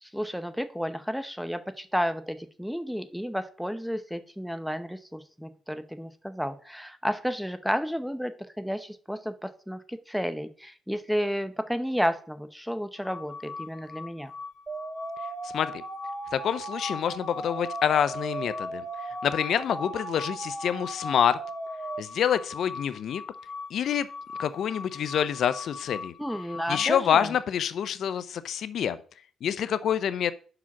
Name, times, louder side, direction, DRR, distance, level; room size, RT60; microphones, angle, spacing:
voice 1, 0.0-14.3 26.2-27.3, equal, ahead, 11 dB, 0.8 m, -32 dB
sound 1, 13.0-27.0, left 4 dB, 50° left, 1.2 m, -41 dB
sound 2, 14.7-22.0, right 3 dB, 30° right, 1.4 m, -38 dB
voice 2, 16.3-18.8 19.2-21.4 22.0-23.2 23.7-24.1 24.4-26.1 26.7-29.0 29.4-30.3, left 9 dB, 65° left, 15 dB, 0.5 m, -27 dB
5.7 x 4.9 x 5.9 m, 0.42 s
cardioid pair, 90°, 0 cm